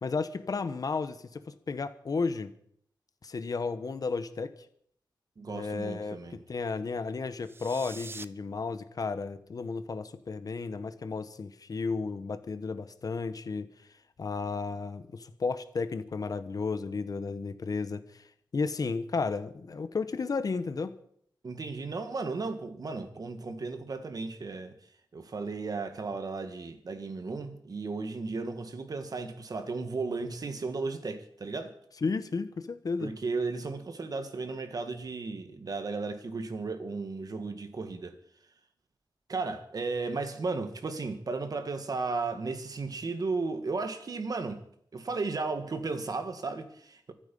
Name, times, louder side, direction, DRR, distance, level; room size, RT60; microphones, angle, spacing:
voice 1, 0.0-2.5 3.2-4.5 5.5-13.7 14.2-18.2 18.5-20.9 32.0-33.1, left 4 dB, 50° left, 1.1 m, -33 dB
voice 2, 5.4-6.4 21.4-24.7 25.1-31.8 33.0-38.1 39.3-44.6 44.9-47.1, right 3 dB, 50° right, 1.8 m, -35 dB
sound 1, 7.4-8.3, right 3 dB, 30° right, 0.6 m, -44 dB
24.5 x 8.9 x 5.5 m
wide cardioid pair, 140°, 8 cm